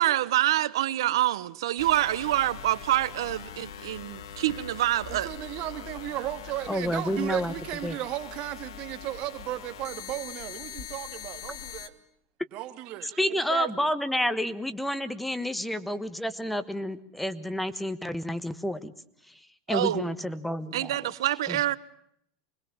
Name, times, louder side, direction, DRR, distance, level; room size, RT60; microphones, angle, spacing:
voice 1, 0.0-5.3 13.5-13.9 19.7-20.1 20.7-21.8, right 14 dB, 90° right, 1.1 m, -26 dB
sound 1, 1.8-11.9, left 8 dB, 85° left, 2.2 m, -42 dB
voice 2, 5.1-11.9 12.5-13.2, right 14 dB, 45° right, 2.3 m, -35 dB
voice 3, 6.7-7.5 7.8-8.0 13.2-18.9 19.3-19.4 19.7-21.1 21.5-21.8, equal, 5° left, 1.3 m, -30 dB
25.5 x 20.0 x 7.1 m
supercardioid pair, 140°, 2 cm